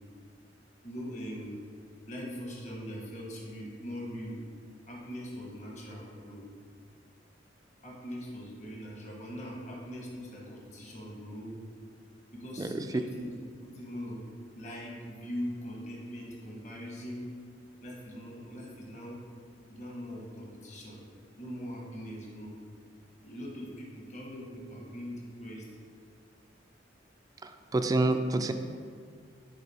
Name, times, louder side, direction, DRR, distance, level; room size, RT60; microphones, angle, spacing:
voice 1, 0.8-1.6 2.1-4.4 4.9-6.4 7.8-11.6 12.3-13.3 13.6-14.2 14.5-17.3 17.8-19.2 19.7-21.0 21.4-22.5 23.2-25.6, equal, 40° left, -2 dB, 1.2 m, -41 dB
voice 2, 27.4-28.5, right 2 dB, 20° right, 8 dB, 0.3 m, -28 dB
6.7 x 4.0 x 4.2 m, 2.1 s
head